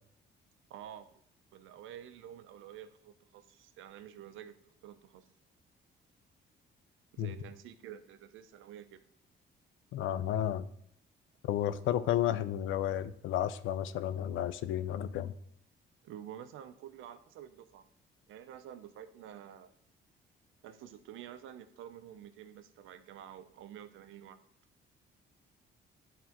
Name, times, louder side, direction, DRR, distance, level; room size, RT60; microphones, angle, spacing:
voice 1, 0.7-1.2 1.5-5.3 7.1-9.0 16.0-17.8 18.3-19.7 20.6-24.4, right 10 dB, 85° right, 11 dB, 0.5 m, -49 dB
voice 2, 9.9-10.6 11.4-15.3, left 11 dB, 80° left, 14 dB, 0.4 m, -32 dB
9.2 x 3.6 x 2.9 m, 0.70 s
cardioid pair, 90°, 20 cm